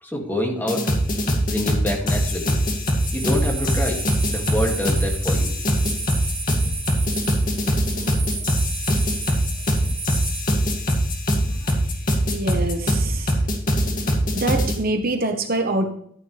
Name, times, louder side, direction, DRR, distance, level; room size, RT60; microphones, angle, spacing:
voice 1, 0.0-0.9 1.5-2.5 3.1-4.0 4.3-5.5 8.1-8.2, left 1 dB, 10° left, 0 dB, 2.3 m, -26 dB
sound 1, 0.7-14.8, equal, 45° left, 2.2 m, -22 dB
sound 2, 3.0-10.4, right 4 dB, 30° right, 5.1 m, -34 dB
voice 2, 12.3-13.4 14.3-15.9, right 2 dB, 50° right, 5 dB, 1.2 m, -25 dB
13.5 x 9.3 x 3.4 m, 0.67 s
head